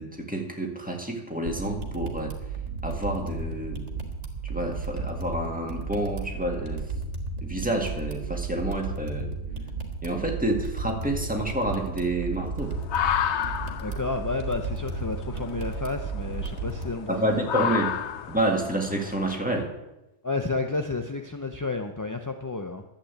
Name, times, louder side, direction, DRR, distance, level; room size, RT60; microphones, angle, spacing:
voice 1, 0.0-2.3 2.8-3.8 4.4-6.9 7.4-9.3 10.0-12.7 17.1-17.9 18.3-19.7, right 1 dB, 5° right, 1 dB, 1.9 m, -29 dB
sound 1, 1.5-16.9, right 3 dB, 65° right, 2.0 m, -34 dB
sound 2, 12.6-19.4, left 9 dB, 70° left, 0.9 m, -32 dB
voice 2, 13.8-17.7 20.2-22.8, left 3 dB, 25° left, 5 dB, 0.4 m, -31 dB
11.5 x 8.4 x 8.2 m, 0.96 s
omnidirectional pair, 1.3 m